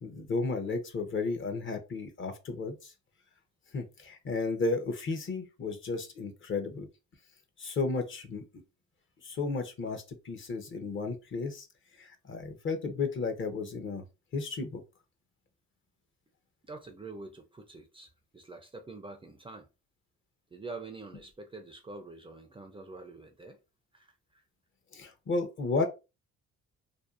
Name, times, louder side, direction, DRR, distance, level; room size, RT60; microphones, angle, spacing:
voice 1, 0.0-2.9 3.7-6.9 7.6-8.4 9.2-11.7 12.0-14.0 14.3-14.8 24.9-25.8, left 3 dB, 40° left, 0.7 m, -33 dB
voice 2, 16.6-19.7 20.5-23.6 23.9-24.4, right 3 dB, 20° right, 0.4 m, -46 dB
2.6 x 2.2 x 2.4 m
cardioid pair, 90°, 30 cm